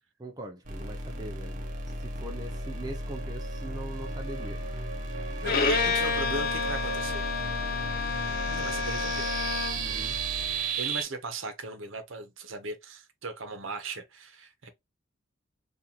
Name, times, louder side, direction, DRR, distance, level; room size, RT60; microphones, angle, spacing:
voice 1, 0.2-4.6 9.8-10.2, right 1 dB, 20° right, 0.4 m, -42 dB
sound 1, 0.6-11.0, right 3 dB, 45° right, 0.7 m, -34 dB
Bowed string instrument, 5.4-9.9, left 5 dB, 50° left, 0.5 m, -30 dB
voice 2, 5.4-7.3 8.5-9.3 10.8-14.7, right 2 dB, 70° right, 0.9 m, -38 dB
2.9 x 2.5 x 3.8 m
head